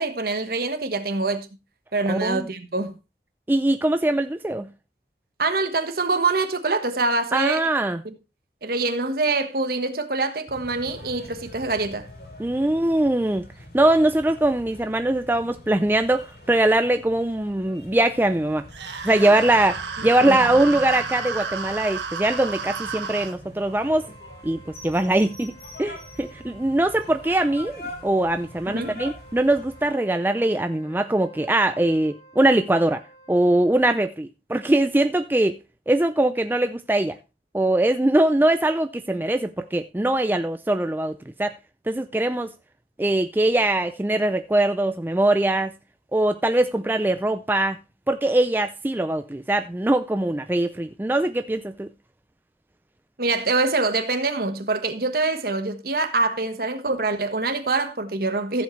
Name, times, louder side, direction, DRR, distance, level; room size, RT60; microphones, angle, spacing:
voice 1, 0.0-1.5 1.9-2.9 5.4-7.6 8.0-8.1 8.6-12.1 19.2-19.3 20.0-20.4 28.7-29.0 53.2-58.6, right 3 dB, 55° right, 1.4 m, -25 dB
voice 2, 2.1-2.5 3.5-4.7 7.3-8.0 12.4-13.5 13.7-18.6 19.0-24.1 24.4-33.0 33.3-35.6 35.9-37.2 37.5-41.5 41.9-42.5 43.0-45.7 46.1-47.8 48.1-51.9, right 1 dB, 10° right, 0.4 m, -22 dB
sound 1, 10.5-29.9, left 1 dB, 60° left, 5.4 m, -44 dB
sound 2, 18.7-23.3, right 5 dB, 80° right, 1.5 m, -32 dB
Wind instrument woodwind instrument, 23.6-34.1, right 2 dB, 45° left, 2.9 m, -51 dB
15.0 x 7.7 x 3.2 m
head